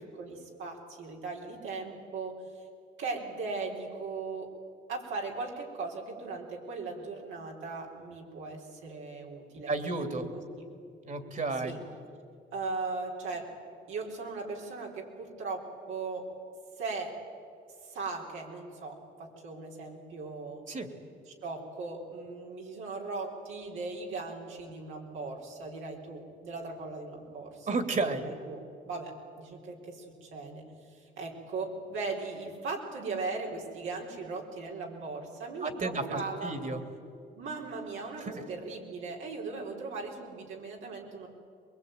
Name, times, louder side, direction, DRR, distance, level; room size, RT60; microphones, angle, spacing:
voice 1, 0.2-2.3 3.0-4.5 4.9-9.7 10.6-10.7 11.6-11.8 12.5-13.4 13.9-16.2 16.8-17.1 17.8-20.6 21.3-27.8 28.1-28.6 28.8-30.7 30.9-36.6 37.4-41.3, right 3 dB, 80° right, -1 dB, 4.4 m, -38 dB
voice 2, 9.7-10.2 11.0-11.7 20.7-20.9 27.7-28.2 35.6-36.8 38.2-38.4, right 3 dB, 40° right, 8 dB, 2.8 m, -32 dB
23.0 x 22.0 x 9.3 m, 2.5 s
cardioid pair, 90°, 20 cm